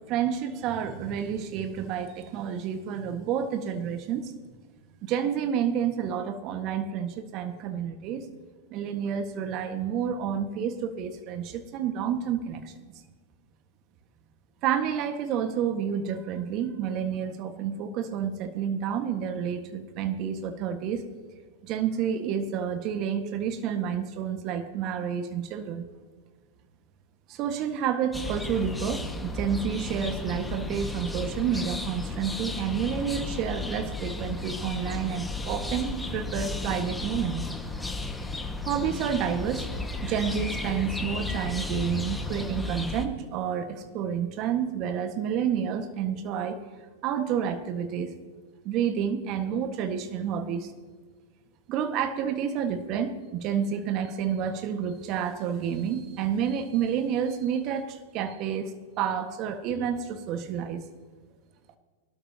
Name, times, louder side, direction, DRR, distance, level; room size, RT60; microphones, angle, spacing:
voice 1, 0.1-4.3 5.0-8.2 8.7-12.9 14.6-21.0 21.6-25.8 27.3-37.4 38.6-39.7 40.0-46.6 47.0-48.1 48.6-50.7 51.7-60.8, right 8 dB, 45° right, 8 dB, 1.6 m, -29 dB
sound 1, 28.1-43.1, left 2 dB, 5° left, 1.7 m, -34 dB
23.5 x 12.5 x 2.9 m, 1.5 s
hypercardioid pair, 105°, 0 cm